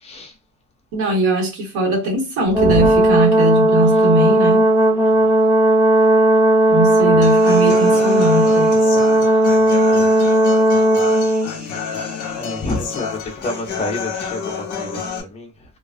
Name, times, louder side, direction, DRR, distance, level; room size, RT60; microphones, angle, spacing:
voice 1, 0.0-0.3 2.6-2.9 5.0-5.3 9.7-10.3 12.4-15.5, left 1 dB, 15° left, 0.3 m, -28 dB
voice 2, 0.9-4.7 6.7-8.7, right 1 dB, 65° right, 1.2 m, -20 dB
Brass instrument, 2.5-11.5, right 1 dB, 5° right, 0.7 m, -15 dB
Human voice / Acoustic guitar, 7.2-15.2, left 7 dB, 45° left, 0.7 m, -28 dB
2.4 x 2.2 x 2.4 m
cardioid pair, 155°, 41 cm